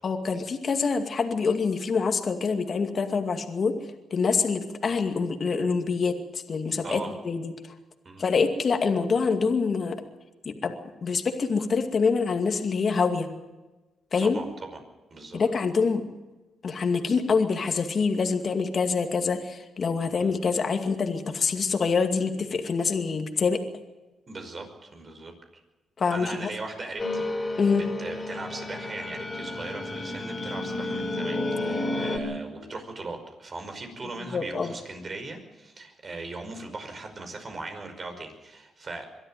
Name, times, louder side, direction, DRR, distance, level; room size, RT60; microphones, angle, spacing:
voice 1, 0.0-3.7 4.1-6.2 6.5-7.5 8.2-10.0 10.5-10.7 11.0-13.3 14.1-14.4 15.3-16.0 16.6-23.6 26.0-26.5 27.6-27.8 34.3-34.7, left 5 dB, 50° left, 5 dB, 2.3 m, -25 dB
voice 2, 6.8-7.2 8.0-8.2 14.2-14.8 15.1-15.4 20.1-20.4 24.3-25.3 26.1-27.3 27.7-39.1, right 3 dB, 45° right, 5 dB, 5.4 m, -39 dB
sound 1, 27.0-32.2, left 2 dB, 30° left, 4.1 m, -31 dB
23.0 x 12.5 x 9.2 m, 1.1 s
cardioid pair, 70°, 0 cm